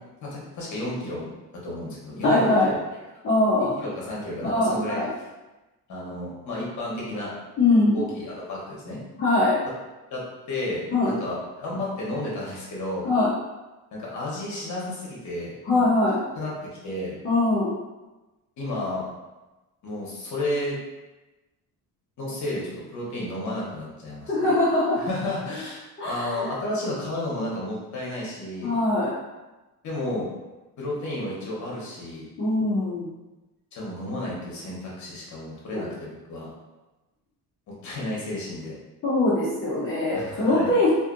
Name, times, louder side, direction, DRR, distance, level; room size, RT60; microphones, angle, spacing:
voice 1, 0.2-2.8 3.8-5.0 5.9-7.4 7.9-9.0 10.1-13.1 13.9-15.8 16.3-16.5 16.8-17.2 18.6-19.1 19.8-20.8 22.2-24.5 25.0-28.7 29.8-30.3 30.8-32.3 33.7-36.5 37.7-38.7 40.1-40.7, left 1 dB, 50° left, -5 dB, 1.0 m, -32 dB
voice 2, 2.2-2.7 3.2-3.7 4.4-5.1 7.6-8.0 9.2-9.6 10.9-11.1 13.0-13.3 15.6-16.2 17.2-17.7 24.3-25.0 26.0-26.5 28.6-29.1 32.4-33.1 39.0-40.9, left 2 dB, 30° left, -10 dB, 0.6 m, -22 dB
2.6 x 2.4 x 2.5 m, 1.1 s
cardioid pair, 155°, 39 cm